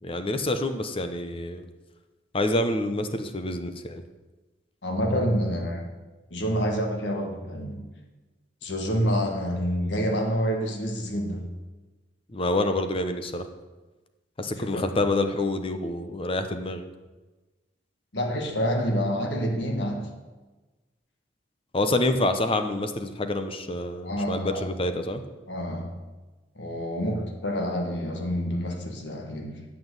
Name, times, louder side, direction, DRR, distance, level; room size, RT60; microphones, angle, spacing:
voice 1, 0.0-1.6 2.3-4.0 12.3-13.4 14.4-16.9 21.7-25.2, left 2 dB, 30° left, 8 dB, 0.8 m, -27 dB
voice 2, 4.8-5.8 6.3-7.8 8.6-11.5 14.4-14.9 18.1-20.1 24.0-24.7 25.5-25.9 26.5-29.6, equal, 75° left, 3 dB, 1.7 m, -28 dB
9.1 x 5.9 x 8.0 m, 1.2 s
head